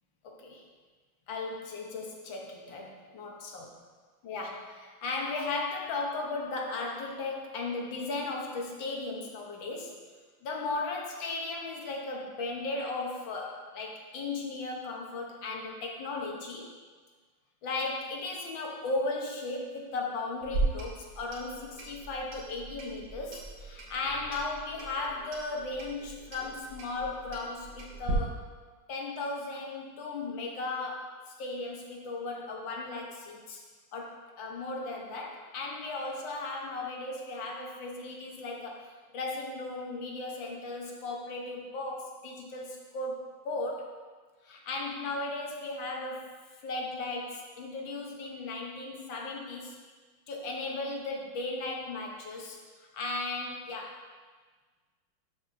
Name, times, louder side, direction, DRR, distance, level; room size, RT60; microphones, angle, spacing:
voice 1, 0.2-0.6 1.3-3.7 4.2-10.0 10.4-16.7 17.6-28.4 28.9-33.6 33.9-38.9 39.1-43.9 44.4-49.7 50.3-54.0, left 3 dB, 65° left, 0 dB, 1.6 m, -36 dB
Clock, 20.4-28.1, right 3 dB, 70° right, 2.2 m, -38 dB
12.0 x 5.8 x 2.6 m, 1.4 s
omnidirectional pair, 2.4 m